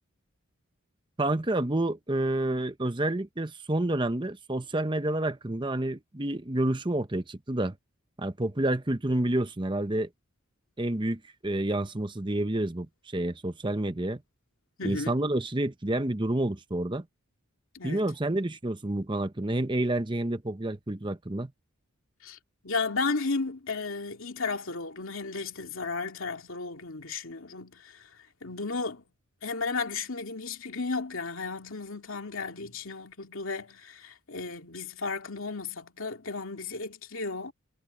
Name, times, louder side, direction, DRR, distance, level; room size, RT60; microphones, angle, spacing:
voice 1, 1.2-7.7 8.2-10.1 10.8-14.2 14.8-17.0 17.8-21.5, right 1 dB, 20° right, 0.9 m, -29 dB
voice 2, 14.8-15.2 17.7-18.1 22.2-22.4 22.6-28.1 28.4-29.0 29.4-37.5, left 4 dB, 70° left, 2.5 m, -34 dB
head